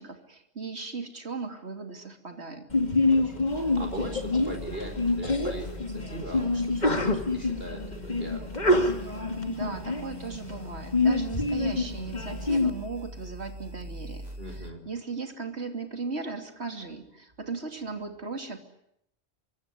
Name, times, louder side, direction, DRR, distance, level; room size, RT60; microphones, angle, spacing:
voice 1, 0.0-2.7 9.0-14.3 14.9-18.6, right 4 dB, 80° right, 5 dB, 3.3 m, -37 dB
Sneeze, 2.7-12.7, left 2 dB, 40° left, 2.7 m, -27 dB
voice 2, 3.1-8.5 14.4-14.8, right 1 dB, 65° right, 5 dB, 4.8 m, -40 dB
sound 1, 3.5-14.7, right 1 dB, 40° right, 2.5 m, -43 dB
25.5 x 23.0 x 10.0 m, 0.76 s
omnidirectional pair, 1.1 m